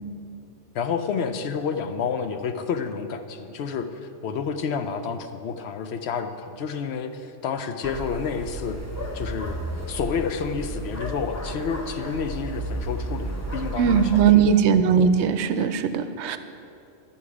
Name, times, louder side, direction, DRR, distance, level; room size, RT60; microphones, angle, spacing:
voice 1, 0.7-8.8 9.1-9.6 9.9-14.5 16.3-16.4, left 6 dB, 65° left, 8 dB, 0.8 m, -30 dB
sound 1, 7.8-14.2, right 1 dB, 15° left, 0.6 m, -33 dB
voice 2, 13.8-16.4, right 7 dB, 70° right, 11 dB, 0.8 m, -19 dB
12.0 x 7.2 x 4.8 m, 2.6 s
omnidirectional pair, 1.3 m